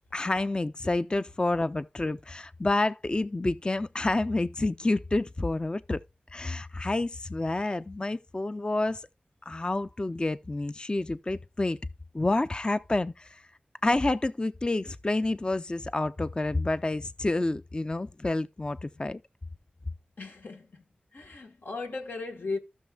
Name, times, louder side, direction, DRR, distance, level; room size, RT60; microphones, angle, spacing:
voice 1, 0.1-6.0 6.3-9.1 9.5-11.8 12.1-13.4 13.8-19.2, left 2 dB, 30° left, 0.4 m, -29 dB
voice 2, 20.2-20.8 21.1-22.6, left 3 dB, 85° left, 1.3 m, -36 dB
16.0 x 6.3 x 2.3 m
wide cardioid pair, 70°, 3 cm